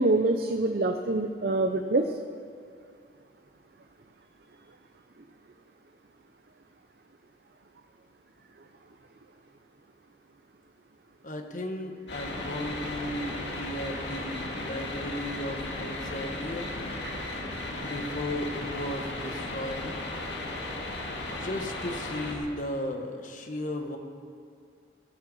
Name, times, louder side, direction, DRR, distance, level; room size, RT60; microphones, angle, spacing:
voice 1, 0.0-2.1 17.0-17.1, right 2 dB, 55° right, 5 dB, 0.6 m, -25 dB
voice 2, 11.2-16.7 17.8-19.9 21.3-24.0, left 1 dB, 45° left, 4 dB, 1.3 m, -35 dB
sound 1, 12.1-22.4, left 2 dB, 75° left, 2.1 m, -35 dB
19.5 x 7.8 x 5.5 m, 2.2 s
head